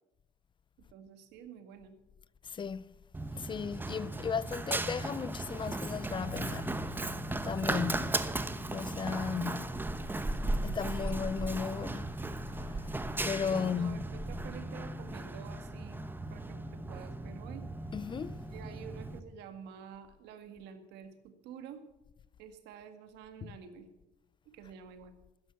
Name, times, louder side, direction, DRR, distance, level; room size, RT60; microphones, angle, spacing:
voice 1, 0.9-2.0 11.0-11.2 13.4-16.0 16.3-17.7 18.5-21.8 22.4-23.9 24.5-25.1, right 7 dB, 90° right, 2.0 m, -49 dB
voice 2, 2.5-2.8 3.4-7.1 7.4-8.3 8.7-9.8 10.6-12.1 12.7-12.8 13.2-14.0 17.9-18.4 23.4-23.5, left 6 dB, 30° left, 0.4 m, -35 dB
Run, 3.1-19.2, right 2 dB, 10° right, 1.0 m, -36 dB
sound 1, 6.2-15.1, left 1 dB, 70° left, 3.5 m, -53 dB
14.0 x 10.5 x 8.4 m
cardioid pair, 110°, 17 cm